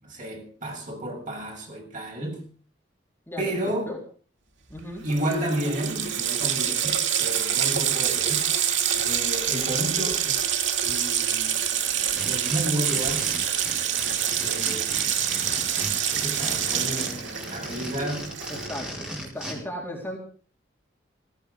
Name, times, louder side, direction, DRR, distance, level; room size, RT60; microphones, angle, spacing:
voice 1, 0.0-2.4 3.4-3.9 5.0-8.5 9.0-10.5 10.8-11.6 12.2-13.3 14.4-15.1 16.1-18.3 18.9-19.3, right 1 dB, 40° right, 1 dB, 7.0 m, -32 dB
voice 2, 4.7-5.0 18.5-20.2, left 1 dB, 10° left, -2 dB, 3.9 m, -36 dB
Water tap faucet, 4.8-4.9 5.1-18.9, right 9 dB, 80° right, 2.4 m, -26 dB
sound 1, 11.9-19.5, equal, 5° right, 5.5 m, -37 dB
17.0 x 16.0 x 5.3 m, 0.43 s
head